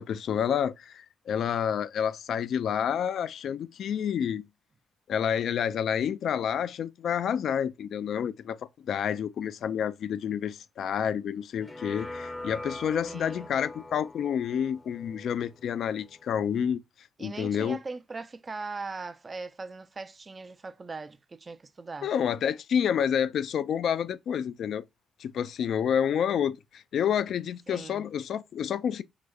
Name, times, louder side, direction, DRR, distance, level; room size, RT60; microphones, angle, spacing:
voice 1, 0.0-4.4 5.1-16.8 17.2-17.8 22.0-24.8 25.2-29.0, left 8 dB, 65° left, 0.3 m, -29 dB
sound 1, 11.6-16.7, left 2 dB, 20° left, 0.6 m, -43 dB
voice 2, 13.1-13.5 17.2-22.1 27.7-28.1, right 3 dB, 30° right, 0.4 m, -40 dB
4.8 x 2.1 x 2.2 m
cardioid pair, 90°, 0 cm